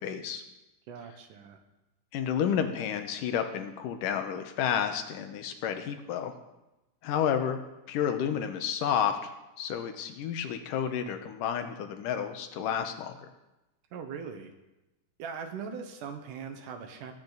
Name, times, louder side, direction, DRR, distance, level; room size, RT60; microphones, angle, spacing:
voice 1, 0.0-0.4 2.1-6.3 7.0-7.6 7.9-13.1, left 8 dB, 85° left, 7 dB, 2.7 m, -31 dB
voice 2, 0.9-1.6 13.9-14.5 15.2-17.1, right 6 dB, 75° right, 6 dB, 2.6 m, -40 dB
20.5 x 9.0 x 4.0 m, 0.98 s
omnidirectional pair, 3.7 m